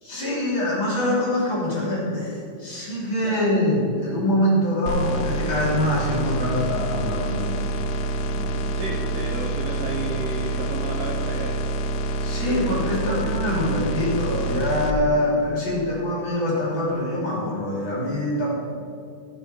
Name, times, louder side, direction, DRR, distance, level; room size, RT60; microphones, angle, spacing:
voice 1, 0.0-7.6 8.3-8.5 12.2-18.5, left 1 dB, 30° left, -5 dB, 3.2 m, -24 dB
sound 1, 4.9-14.9, right 1 dB, 90° left, 2.9 m, -27 dB
voice 2, 8.7-11.6, right 3 dB, 90° right, 0 dB, 1.7 m, -32 dB
14.0 x 7.0 x 5.8 m, 2.4 s
omnidirectional pair, 4.8 m